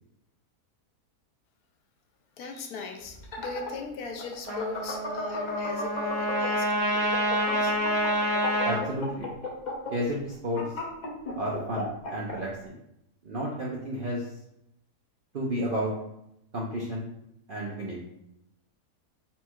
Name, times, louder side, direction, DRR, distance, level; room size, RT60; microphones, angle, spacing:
voice 1, 2.4-7.7 8.3-8.6, left 4 dB, 75° left, 4 dB, 1.1 m, -38 dB
sound 1, 3.1-6.7 7.0-12.4, left 3 dB, 50° left, 0.5 m, -35 dB
Trumpet, 4.4-8.8, equal, 40° right, 1.0 m, -28 dB
voice 2, 8.7-9.3 9.9-10.6 11.4-12.8 13.2-14.3 15.3-15.9 16.5-17.1 17.5-18.0, equal, 60° right, -4 dB, 0.5 m, -31 dB
4.1 x 2.3 x 4.4 m, 0.81 s
omnidirectional pair, 1.7 m